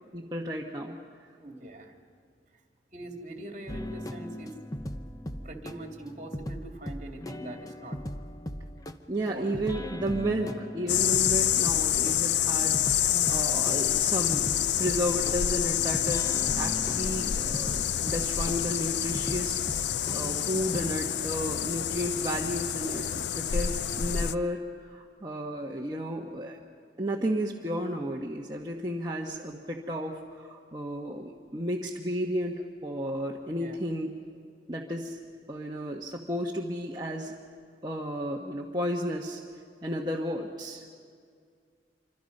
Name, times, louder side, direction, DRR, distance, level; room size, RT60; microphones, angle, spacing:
voice 1, 0.1-1.0 9.1-13.0 13.3-19.6 20.1-24.6 24.9-26.6 27.0-34.1 34.7-35.2 35.5-37.3 37.8-39.4 39.8-40.8, equal, 25° right, -2 dB, 1.3 m, -33 dB
voice 2, 1.4-1.9 2.9-4.5 5.4-8.0 9.3-9.5 13.0-13.6 23.9-24.0 33.6-33.8, right 1 dB, 45° right, 2 dB, 2.8 m, -42 dB
sound 1, 3.7-20.8, equal, 20° left, 0.8 m, -39 dB
sound 2, 10.9-24.4, left 10 dB, 80° left, 0.5 m, -27 dB
27.0 x 25.0 x 5.5 m, 2.1 s
head